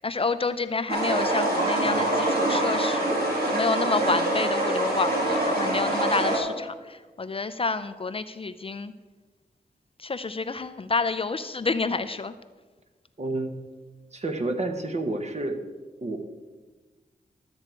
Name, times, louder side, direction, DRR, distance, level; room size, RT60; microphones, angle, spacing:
voice 1, 0.0-3.2 3.4-8.9 10.0-12.3, left 4 dB, 35° left, 11 dB, 0.4 m, -29 dB
sound 1, 0.9-6.4, right 1 dB, 75° right, 2.3 m, -25 dB
voice 2, 13.2-13.5 14.1-15.6 16.0-16.2, right 2 dB, 45° right, 5 dB, 1.1 m, -29 dB
12.0 x 7.9 x 4.5 m, 1.3 s
wide cardioid pair, 105°, 16 cm